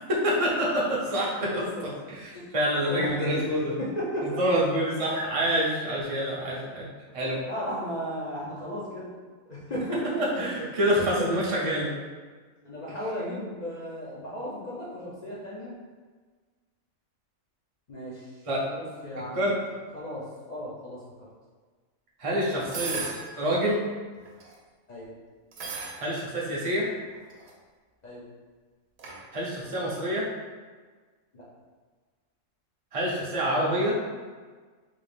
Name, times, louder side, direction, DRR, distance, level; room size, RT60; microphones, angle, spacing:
voice 1, 0.1-1.6 2.1-3.8 4.4-6.9 7.1-7.4 10.2-11.9 18.5-18.6 19.3-19.6 22.2-23.1 23.4-23.8 26.0-26.9 29.3-30.3 32.9-34.0, equal, 35° right, -5 dB, 0.6 m, -26 dB
voice 2, 1.5-1.9 2.3-2.4 2.9-3.4 3.8-4.3 6.6-6.7 7.2-9.1 9.5-10.0 10.7-11.4 12.6-15.7 17.9-19.5 19.9-21.0 22.3-23.1 24.9-25.1 28.0-28.2 31.3-31.4, equal, 45° left, -7 dB, 0.5 m, -36 dB
sound 1, 22.7-23.3 24.2-24.5 25.5-26.0 27.1-27.5 29.0-29.2, right 5 dB, 80° right, 1.1 m, -35 dB
3.8 x 2.4 x 3.3 m, 1.5 s
omnidirectional pair, 1.4 m